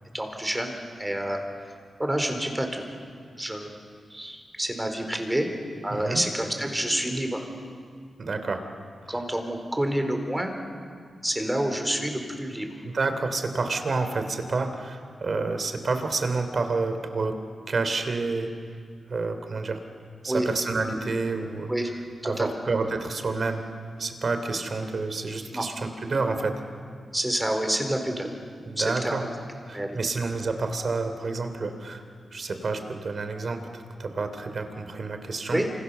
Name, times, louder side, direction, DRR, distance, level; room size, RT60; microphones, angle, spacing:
voice 1, 0.1-1.4 2.0-2.8 3.4-3.8 4.1-5.5 5.8-7.5 9.1-10.5 11.2-12.7 20.3-20.5 21.7-21.9 22.2-22.5 25.5-25.6 27.1-28.3 28.8-29.3 29.7-30.0 35.5-35.7, right 1 dB, 10° right, 4 dB, 4.2 m, -28 dB
voice 2, 5.9-6.2 8.2-8.6 12.8-17.3 17.7-18.5 19.1-19.8 20.2-21.7 22.2-23.6 24.0-26.5 28.7-29.2 29.7-32.0 32.3-35.6, right 3 dB, 55° right, 8 dB, 3.2 m, -29 dB
28.5 x 27.0 x 6.9 m, 2.1 s
wide cardioid pair, 95°, 0 cm